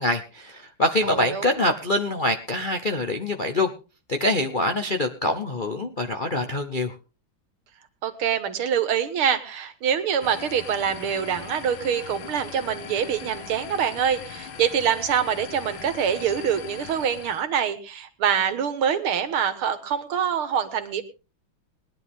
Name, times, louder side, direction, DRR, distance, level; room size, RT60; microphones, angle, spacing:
voice 1, 0.0-3.7 4.1-6.9, left 1 dB, 50° left, 4 dB, 0.6 m, -25 dB
voice 2, 1.0-1.6 8.0-21.0, right 8 dB, 80° right, 10 dB, 2.2 m, -25 dB
sound 1, 10.2-17.4, left 7 dB, 70° left, 2.0 m, -40 dB
20.5 x 10.5 x 3.6 m, 0.32 s
omnidirectional pair, 2.3 m